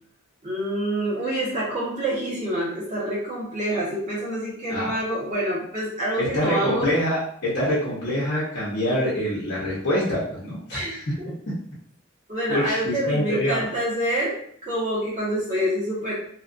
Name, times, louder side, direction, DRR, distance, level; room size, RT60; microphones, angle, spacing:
voice 1, 0.4-6.9 10.7-11.0 12.3-14.4 14.6-16.1, right 1 dB, 35° right, -8 dB, 1.0 m, -27 dB
voice 2, 6.2-11.1 12.5-13.7, equal, 55° left, -7 dB, 0.8 m, -25 dB
2.9 x 2.4 x 2.5 m, 0.64 s
head